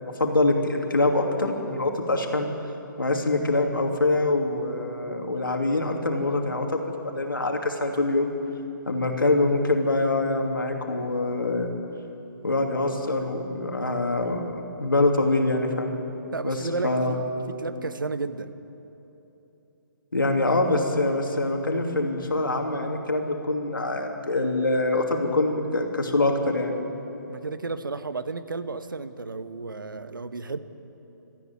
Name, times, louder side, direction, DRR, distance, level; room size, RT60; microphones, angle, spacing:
voice 1, 0.0-2.5 3.0-8.3 8.9-11.7 12.4-15.9 16.4-16.6 16.8-17.2 20.1-26.7, left 2 dB, 85° left, 2 dB, 2.9 m, -24 dB
voice 2, 16.3-17.2 17.5-18.5 27.3-30.6, right 3 dB, 80° right, 11 dB, 1.2 m, -32 dB
21.0 x 14.5 x 9.3 m, 3.0 s
figure-of-eight pair, 140°, 11 cm